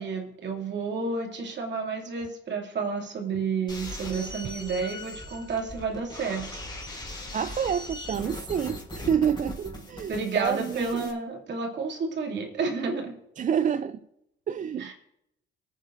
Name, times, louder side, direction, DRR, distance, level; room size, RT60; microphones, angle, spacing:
voice 1, 0.0-6.6 10.1-13.1 14.8-14.9, right 4 dB, 60° right, 2.6 m, -31 dB
sound 1, 3.7-11.1, left 1 dB, 25° left, 4.1 m, -40 dB
voice 2, 7.3-11.1 13.4-14.0 14.5-14.9, right 8 dB, 40° right, 0.4 m, -28 dB
21.0 x 9.1 x 2.6 m
cardioid pair, 90°, 20 cm